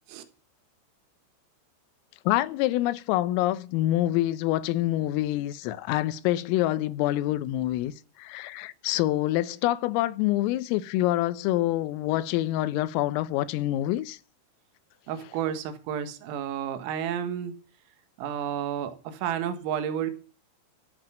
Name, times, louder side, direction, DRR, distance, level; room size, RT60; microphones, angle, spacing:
voice 1, 2.3-7.9 8.2-14.2, left 15 dB, 90° left, 3.5 m, -26 dB
voice 2, 15.1-17.6 18.2-20.1, right 9 dB, 85° right, 4.2 m, -31 dB
13.5 x 8.4 x 7.5 m
omnidirectional pair, 5.8 m